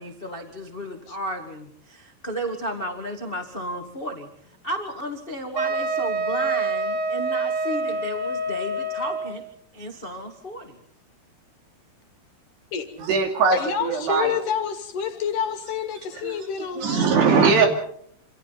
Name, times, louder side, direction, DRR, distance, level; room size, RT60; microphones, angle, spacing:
voice 1, 0.0-4.3 4.6-9.4 9.7-10.8, equal, 40° left, 3 dB, 0.8 m, -33 dB
Wind instrument woodwind instrument, 5.5-9.4, right 2 dB, 50° right, 2.8 m, -26 dB
voice 2, 13.0-14.3 16.2-16.4 16.8-17.7, right 5 dB, 90° right, 3 dB, 5.0 m, -20 dB
voice 3, 13.5-17.7, left 7 dB, 60° left, 7 dB, 3.1 m, -29 dB
27.5 x 27.0 x 4.1 m, 0.65 s
omnidirectional pair, 4.6 m